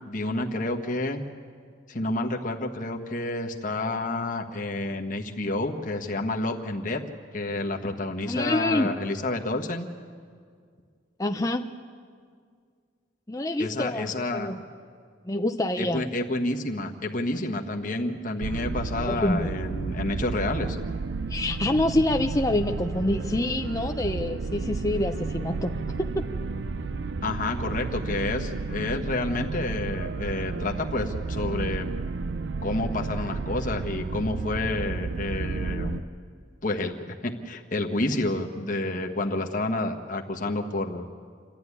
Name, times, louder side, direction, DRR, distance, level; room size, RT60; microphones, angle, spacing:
voice 1, 0.1-1.2 1.9-7.0 7.3-9.9 13.6-14.5 15.8-20.8 27.2-31.9 32.6-36.0 36.6-41.0, left 2 dB, 40° left, 2 dB, 1.4 m, -29 dB
voice 2, 8.3-8.9 11.2-11.7 13.3-14.1 14.3-14.6 15.2-16.0 19.1-19.5 21.3-26.2, left 1 dB, 15° left, 5 dB, 0.6 m, -26 dB
sound 1, 18.4-36.0, right 4 dB, 60° right, 0.5 m, -32 dB
28.5 x 12.0 x 9.7 m, 2.1 s
head